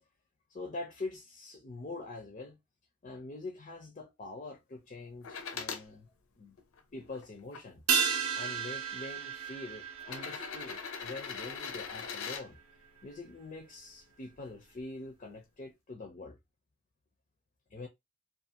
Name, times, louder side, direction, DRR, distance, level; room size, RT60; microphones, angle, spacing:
voice 1, 0.5-2.6 3.0-6.1 6.4-6.6 6.9-7.8 8.3-12.6 13.0-16.4 17.7-17.9, left 2 dB, 35° left, 0.5 m, -44 dB
sound 1, 5.2-5.9 6.6-7.6 8.6-8.7 10.0-12.5 14.3-14.4, left 6 dB, 80° left, 0.6 m, -41 dB
sound 2, 7.9-12.6 12.9-13.0, right 7 dB, 90° right, 0.5 m, -34 dB
2.5 x 2.4 x 2.7 m
head